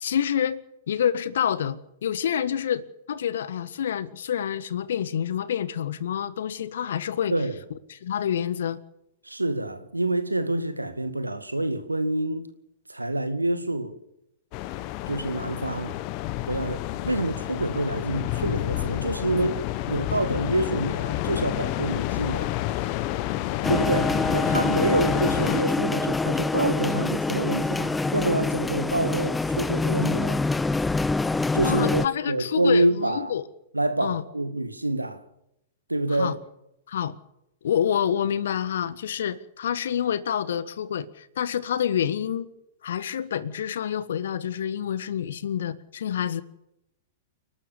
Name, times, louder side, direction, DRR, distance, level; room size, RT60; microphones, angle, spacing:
voice 1, 0.0-7.3 7.9-8.8 16.9-17.1 31.5-33.4 34.0-34.2 36.2-36.4 36.9-37.1 37.6-42.5 42.8-46.4, left 9 dB, 65° left, 1.5 m, -28 dB
voice 2, 9.2-12.5 12.9-14.0 15.1-16.0 16.5-22.5 23.7-30.4 31.5-33.3 33.7-35.2 35.9-36.4, right 1 dB, 90° right, 1.9 m, -27 dB
sound 1, 14.5-25.6, left 15 dB, 40° left, 1.2 m, -29 dB
sound 2, 23.6-32.1, left 3 dB, 10° left, 0.7 m, -25 dB
29.5 x 12.5 x 7.1 m
figure-of-eight pair, 100°, 0 cm